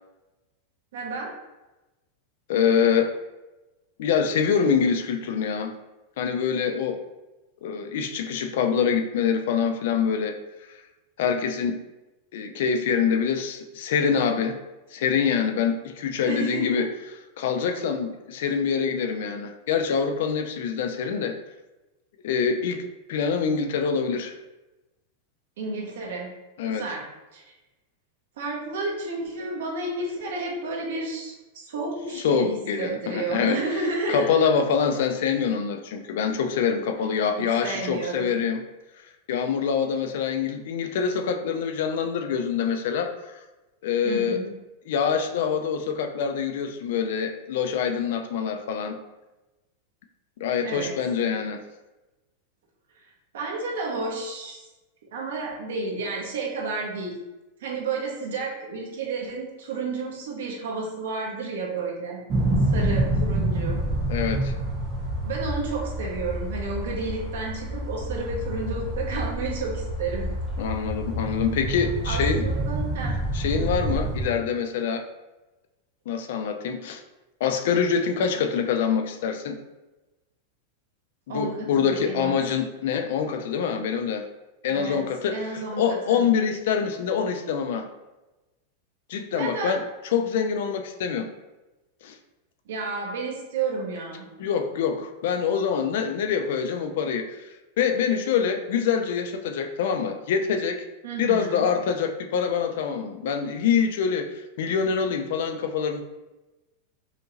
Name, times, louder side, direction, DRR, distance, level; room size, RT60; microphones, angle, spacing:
voice 1, 0.9-1.3 16.2-16.8 25.6-26.3 26.6-27.0 27.3-27.4 28.4-34.4 37.6-38.3 44.0-44.5 50.6-50.9 53.3-54.7 55.1-57.2 57.6-62.2 62.7-63.8 65.2-70.3 72.0-73.2 81.3-82.4 84.7-85.0 85.3-86.2 89.3-89.8 92.7-94.2 101.0-101.7, right 3 dB, 85° right, -1 dB, 1.1 m, -31 dB
voice 2, 2.5-3.1 4.0-5.7 6.2-7.0 7.6-10.4 11.2-11.8 12.3-14.6 14.9-16.9 17.4-21.4 22.2-24.3 26.6-26.9 32.1-33.6 34.1-38.6 39.3-43.4 43.8-44.4 44.9-49.0 50.4-51.6 64.1-64.5 70.6-72.5 73.3-75.0 76.1-77.0 77.4-79.6 81.3-84.3 84.6-87.9 89.1-89.8 90.1-91.3 92.0-92.2 94.4-97.4 97.8-100.8 101.2-106.0, left 6 dB, 60° left, 6 dB, 0.4 m, -25 dB
sound 1, 62.3-74.3, right 1 dB, 20° right, 0.6 m, -28 dB
5.1 x 2.9 x 2.5 m, 1.1 s
supercardioid pair, 175°, 0 cm